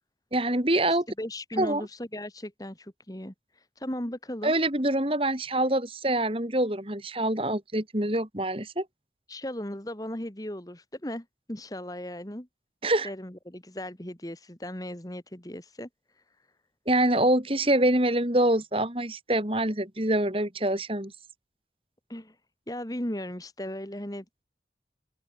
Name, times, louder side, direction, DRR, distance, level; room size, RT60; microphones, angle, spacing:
voice 1, 0.3-1.1 1.6-1.8 4.4-8.9 12.8-13.1 16.9-21.1, right 1 dB, 30° right, 3.5 m, -25 dB
voice 2, 1.2-4.5 9.3-12.5 13.0-15.9 22.1-22.4 22.7-24.4, left 1 dB, 20° left, 2.0 m, -37 dB
open air
head